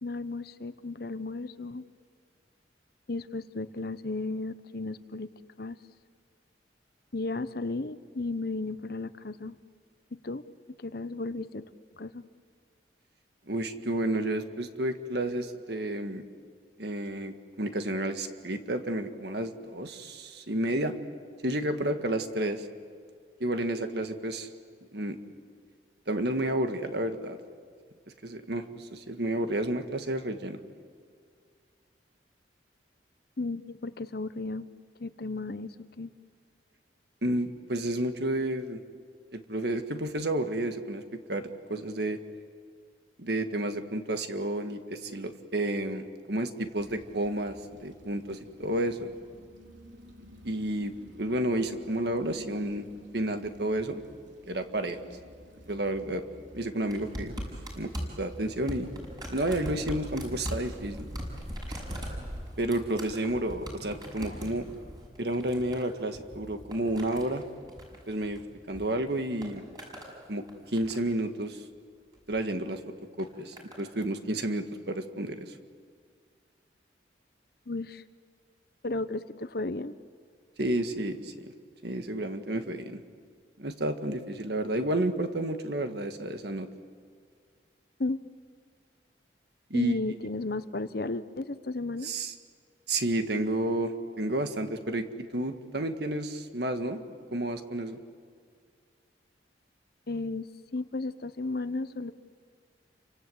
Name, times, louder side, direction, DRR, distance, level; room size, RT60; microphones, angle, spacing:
voice 1, 0.0-1.8 3.1-5.3 5.6-5.8 7.1-9.6 10.1-10.4 10.8-11.6 12.0-12.2 33.4-34.7 35.0-36.1 64.2-64.4 77.7-78.0 78.8-79.9 88.0-88.2 89.7-92.1 100.1-100.5 100.7-102.1, left 3 dB, 55° left, 13 dB, 0.9 m, -34 dB
voice 2, 13.5-16.2 16.8-20.9 21.4-22.7 23.4-24.5 24.9-25.2 26.1-27.4 28.2-30.6 37.2-38.8 39.3-41.0 41.3-42.2 43.2-49.1 50.4-52.9 53.1-54.0 54.5-55.0 55.7-56.2 56.5-57.3 57.8-57.9 58.2-58.9 59.3-61.0 61.7-61.8 62.6-64.7 65.2-67.4 68.1-68.4 68.7-69.6 70.3-71.6 72.3-72.8 73.2-75.5 80.6-81.3 81.8-83.0 83.6-86.7 89.7-90.0 92.0-92.3 92.9-97.0 97.3-98.0, right 1 dB, 60° right, 7 dB, 1.8 m, -31 dB
sound 1, 46.7-62.5, equal, 80° right, 3.9 m, -49 dB
sound 2, 56.9-68.8 69.1-70.1 70.5-71.2 72.1-72.4 73.2-73.8 74.7-74.8, equal, 20° right, 5.8 m, -41 dB
29.0 x 24.5 x 8.0 m, 2.1 s
head